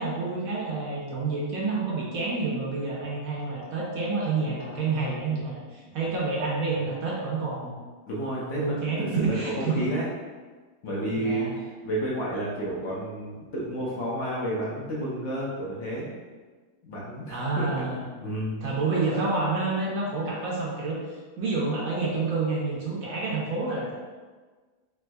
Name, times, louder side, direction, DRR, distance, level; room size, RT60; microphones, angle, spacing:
voice 1, 0.0-7.7 8.5-9.9 11.2-11.5 17.3-18.1 18.6-23.9, right 3 dB, 70° right, -4 dB, 0.9 m, -28 dB
voice 2, 8.1-10.1 10.8-16.1 16.8-18.6, right 1 dB, 65° left, -5 dB, 0.7 m, -31 dB
3.4 x 2.9 x 2.2 m, 1.4 s
omnidirectional pair, 1.8 m